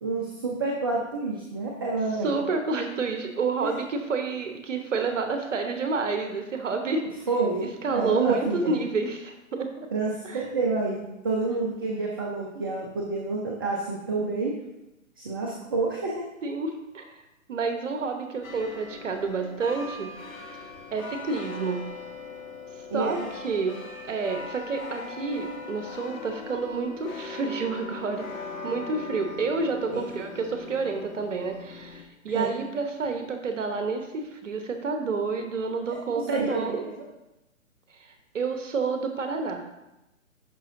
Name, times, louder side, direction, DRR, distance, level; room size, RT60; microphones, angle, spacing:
voice 1, 0.0-2.3 3.6-3.7 7.3-8.7 9.9-14.5 15.2-16.2 22.9-23.2 29.9-30.1 32.3-32.5 35.8-36.8, right 3 dB, 20° right, -1 dB, 0.4 m, -29 dB
voice 2, 2.2-7.0 7.6-9.9 10.2-10.5 16.4-17.2 17.5-20.1 20.9-21.8 22.9-23.8 24.1-28.3 28.6-36.9 37.9-39.6, right 4 dB, 65° right, 6 dB, 1.0 m, -29 dB
sound 1, 18.4-32.0, left 4 dB, 80° left, 1.3 m, -40 dB
10.5 x 5.9 x 2.6 m, 0.96 s
figure-of-eight pair, 135°, 41 cm